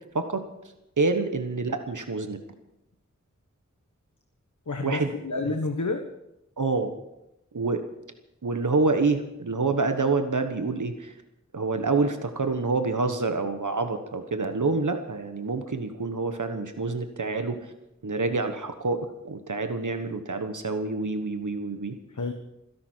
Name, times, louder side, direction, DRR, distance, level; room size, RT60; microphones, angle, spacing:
voice 1, 1.0-2.4 4.8-5.1 6.6-6.9 7.5-7.8 8.4-11.1 11.5-17.7 18.0-21.9, right 3 dB, 85° right, 7 dB, 1.3 m, -27 dB
voice 2, 4.7-6.0 22.1-22.3, left 3 dB, 75° left, 5 dB, 1.3 m, -29 dB
26.5 x 11.0 x 4.6 m, 0.86 s
wide cardioid pair, 50°, 30 cm